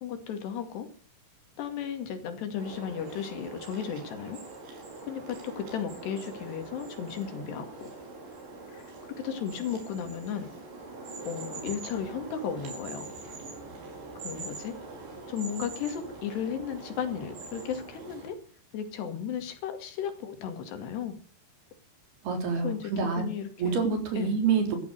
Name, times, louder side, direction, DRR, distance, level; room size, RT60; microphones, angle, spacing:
voice 1, 0.0-0.9 1.6-4.4 5.0-7.9 8.7-8.9 9.2-10.5 11.3-13.1 14.2-14.7 15.3-18.4 18.7-21.2 22.6-23.8 24.2-24.4, left 8 dB, 70° left, 7 dB, 4.3 m, -35 dB
sound 1, 2.6-18.3, right 3 dB, 80° right, 7.1 m, -43 dB
voice 2, 22.2-23.2 23.6-24.8, right 5 dB, 60° right, 4 dB, 5.9 m, -27 dB
14.5 x 14.0 x 6.6 m, 0.39 s
omnidirectional pair, 5.0 m